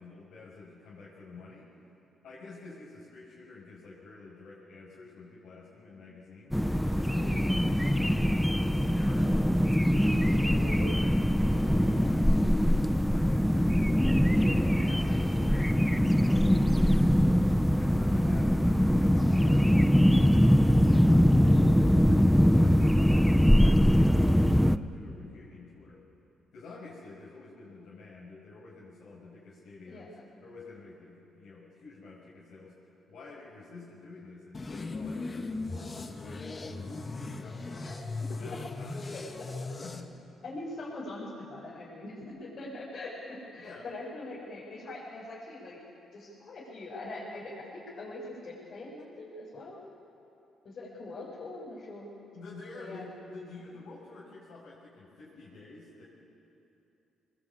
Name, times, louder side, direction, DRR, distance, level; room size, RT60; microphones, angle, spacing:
voice 1, 0.0-1.7 2.2-6.6 6.9-9.5 10.0-11.1 11.5-14.2 14.7-17.2 17.7-21.5 22.0-26.0 26.5-32.7 33.1-38.0 38.4-39.1 39.8-40.1 40.4-40.5 43.6-43.9 52.3-56.0, left 3 dB, 70° left, -7 dB, 6.0 m, -49 dB
sound 1, 6.5-24.8, equal, ahead, 0.7 m, -23 dB
voice 2, 10.5-10.9 14.3-14.9 18.0-18.4 29.9-30.3 37.8-38.4 39.1-39.7 40.4-45.8 46.1-49.8 50.6-52.1 52.7-53.1, left 2 dB, 55° left, -7 dB, 6.5 m, -42 dB
sound 2, 34.5-40.0, left 3 dB, 30° left, 1.9 m, -38 dB
23.5 x 21.0 x 8.8 m, 2.9 s
cardioid pair, 90°, 0 cm